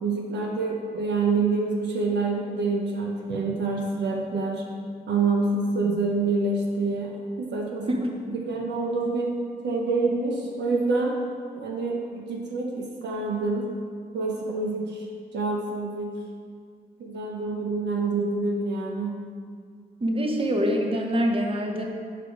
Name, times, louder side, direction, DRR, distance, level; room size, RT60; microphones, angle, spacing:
voice 1, 0.0-4.6 5.1-7.9 8.3-9.4 9.6-11.2 11.5-13.7 14.1-15.1 15.3-16.1 17.0-19.1, right 3 dB, 75° right, 0 dB, 0.7 m, -27 dB
voice 2, 20.0-21.8, equal, 30° right, 2 dB, 1.0 m, -24 dB
6.0 x 4.9 x 4.6 m, 2.1 s
supercardioid pair, 55°, 18 cm